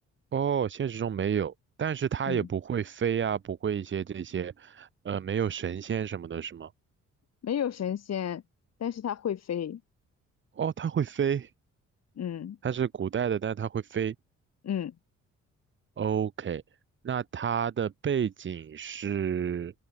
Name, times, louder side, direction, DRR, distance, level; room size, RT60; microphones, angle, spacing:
voice 1, 0.3-1.5 1.8-6.7 10.6-11.5 12.6-14.1 16.0-16.6 17.0-19.7, right 8 dB, 40° right, 1.0 m, -30 dB
voice 2, 7.4-8.4 8.8-9.8 12.2-12.6 14.6-14.9, left 9 dB, 55° left, 3.2 m, -32 dB
open air
cardioid pair, 90°, 30 cm